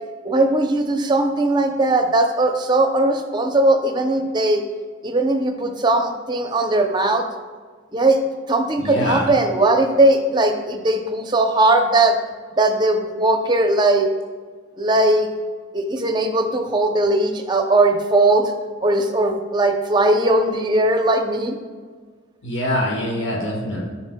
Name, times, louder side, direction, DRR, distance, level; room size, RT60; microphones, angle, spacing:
voice 1, 0.2-4.6 5.0-7.2 7.9-8.2 8.5-12.2 12.5-14.1 14.8-15.3 15.7-18.5 18.8-21.6, right 2 dB, 20° right, 4 dB, 0.6 m, -19 dB
voice 2, 8.8-9.3 22.4-23.8, equal, 70° left, -2 dB, 1.2 m, -24 dB
9.7 x 5.8 x 2.2 m, 1.5 s
head